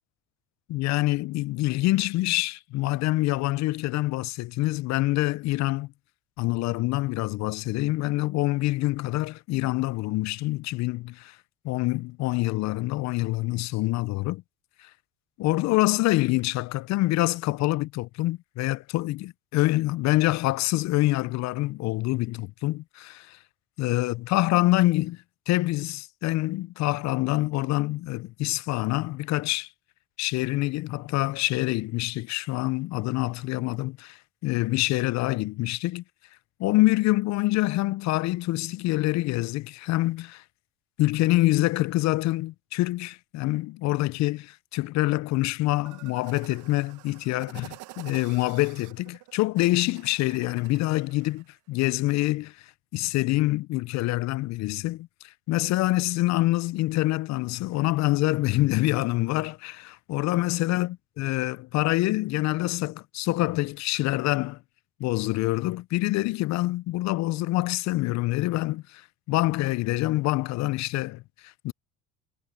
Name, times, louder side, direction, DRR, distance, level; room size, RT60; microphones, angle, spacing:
voice 1, 0.7-5.9 6.4-11.4 11.6-14.4 14.8-14.9 15.4-23.4 23.8-29.7 30.2-36.0 36.6-40.4 41.0-52.6 52.9-64.6 65.0-71.7, left 18 dB, 60° left, 0.5 m, -26 dB
sound 1, 45.9-51.5, right 18 dB, 70° right, 1.3 m, -48 dB
supercardioid pair, 85°, 32 cm